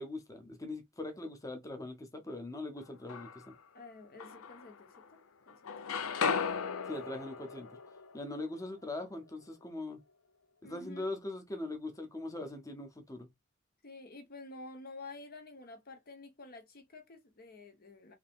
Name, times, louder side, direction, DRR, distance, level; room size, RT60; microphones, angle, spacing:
voice 1, 0.0-3.5 6.9-7.7 8.1-10.0 10.6-13.3, left 2 dB, 15° left, 0.9 m, -41 dB
sound 1, 2.8-3.6 4.2-5.2 5.5-9.4, left 6 dB, 90° left, 0.6 m, -37 dB
voice 2, 3.7-5.2 5.5-5.9 10.6-11.1 13.8-18.2, left 3 dB, 45° left, 0.9 m, -50 dB
3.5 x 2.8 x 3.5 m
head